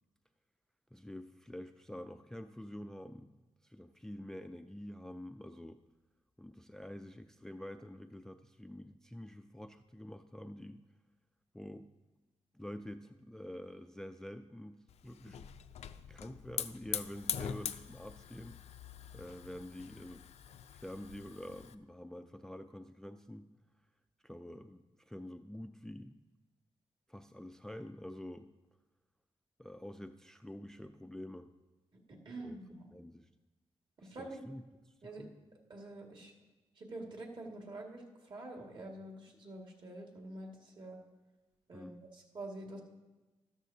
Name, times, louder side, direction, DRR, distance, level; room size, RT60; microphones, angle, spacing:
voice 1, 0.9-3.3 3.6-5.8 6.4-10.8 11.5-11.9 12.5-15.5 16.1-18.6 19.1-20.3 20.8-23.5 24.2-26.2 27.1-28.5 29.6-31.5 32.4-32.6 32.9-33.3 34.0-35.3 41.7-42.0, left 1 dB, 5° left, 8 dB, 0.3 m, -47 dB
Hiss / Fire, 14.9-21.7, left 9 dB, 80° left, 0.5 m, -43 dB
voice 2, 32.1-32.9 34.0-34.4 35.0-35.2 35.7-36.3 36.8-41.0 41.7-42.8, right 2 dB, 45° right, 0 dB, 2.0 m, -47 dB
13.0 x 12.5 x 2.7 m, 1.1 s
wide cardioid pair, 120°, 11 cm